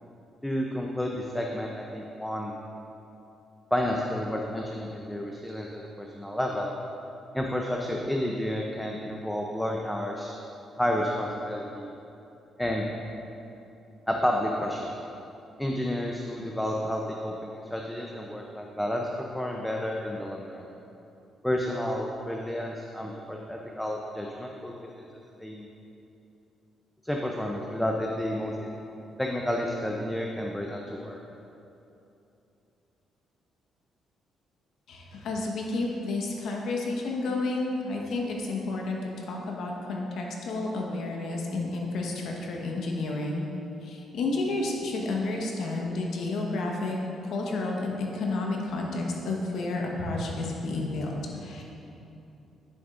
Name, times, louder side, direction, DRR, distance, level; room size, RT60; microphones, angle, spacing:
voice 1, 0.4-2.5 3.7-6.7 7.3-10.3 10.8-11.9 12.6-12.9 14.1-14.9 15.6-19.1 19.3-20.6 21.4-25.1 25.4-25.7 27.0-28.7 29.2-31.2, left 1 dB, 5° left, 0 dB, 0.6 m, -30 dB
voice 2, 34.9-43.5 43.8-47.0 47.2-51.6, left 2 dB, 75° left, -1 dB, 1.2 m, -31 dB
10.5 x 7.2 x 2.5 m, 2.9 s
cardioid pair, 90°, 0 cm